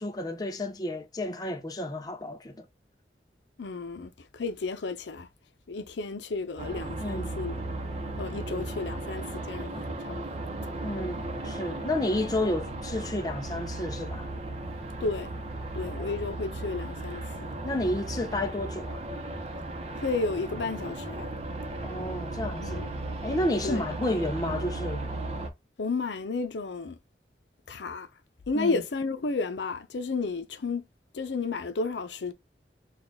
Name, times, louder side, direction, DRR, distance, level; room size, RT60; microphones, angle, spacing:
voice 1, 0.0-2.6 7.0-7.4 8.5-8.7 10.8-14.3 16.0-16.2 17.6-19.0 21.8-22.8 23.2-25.1 28.5-28.8, left 1 dB, 20° left, 0.5 m, -31 dB
voice 2, 3.6-5.3 5.7-7.6 8.2-10.2 15.0-15.3 15.7-17.5 20.0-21.3 22.6-22.9 23.6-23.9 25.8-27.0 27.7-28.1 28.5-30.8 31.1-32.3, left 3 dB, 85° left, 0.6 m, -32 dB
sound 1, 6.6-25.5, right 2 dB, 35° right, 0.7 m, -36 dB
4.1 x 2.4 x 3.4 m
head